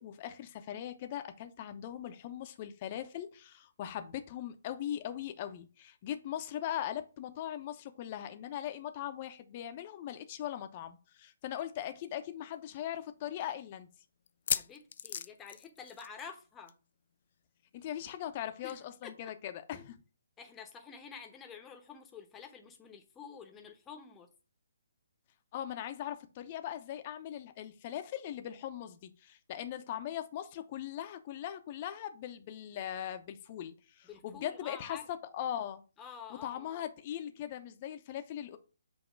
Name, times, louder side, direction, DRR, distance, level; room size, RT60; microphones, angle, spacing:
voice 1, 0.0-13.9 17.7-20.0 25.5-35.0 35.3-35.8 36.3-38.6, left 11 dB, 35° left, 0.8 m, -40 dB
sound 1, 11.6-11.7 12.0-12.1 12.7-12.8 14.3-16.4 16.7-16.9 17.1-17.2 18.7-18.8, left 8 dB, 50° left, 0.4 m, -37 dB
voice 2, 14.5-16.7 18.6-18.8 19.0-19.3 19.7-19.9 20.4-24.3 34.1-35.1 36.0-36.8, left 6 dB, 15° left, 1.0 m, -49 dB
8.0 x 2.9 x 4.6 m
figure-of-eight pair, 140°, 0 cm